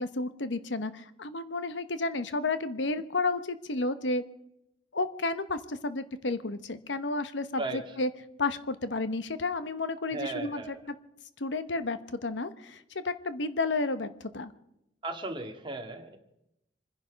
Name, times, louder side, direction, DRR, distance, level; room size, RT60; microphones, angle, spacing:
voice 1, 0.0-4.2 4.9-8.1 8.4-10.6 11.4-14.5, left 3 dB, 80° left, 12 dB, 1.0 m, -31 dB
voice 2, 10.1-10.8 15.0-16.2, right 2 dB, 25° right, 3 dB, 2.0 m, -36 dB
25.5 x 10.5 x 5.2 m, 0.83 s
head